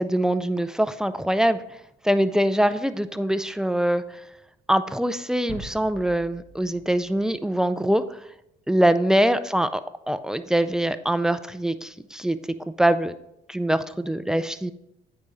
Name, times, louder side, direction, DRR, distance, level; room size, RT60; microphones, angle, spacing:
voice 1, 0.0-1.6 2.0-4.0 4.7-8.0 8.7-9.8 10.1-12.4 12.8-13.1 13.5-14.7, right 1 dB, 5° right, 11 dB, 0.4 m, -23 dB
sound 1, 5.5-8.0, equal, 20° left, 2.8 m, -44 dB
8.7 x 5.0 x 4.0 m, 0.82 s
cardioid pair, 90°, 20 cm